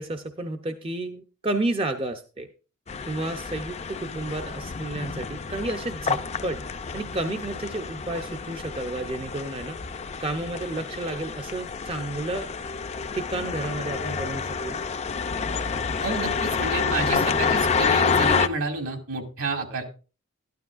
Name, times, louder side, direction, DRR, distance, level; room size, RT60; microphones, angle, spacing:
voice 1, 0.0-2.5 3.0-6.6 6.9-9.8 10.2-12.5 13.1-14.8, right 2 dB, 25° right, 6 dB, 0.5 m, -31 dB
sound 1, 2.9-18.5, left 5 dB, 30° left, 0.4 m, -28 dB
voice 2, 16.0-19.8, right 3 dB, 65° right, 4 dB, 2.3 m, -30 dB
13.0 x 12.0 x 2.5 m, 0.34 s
head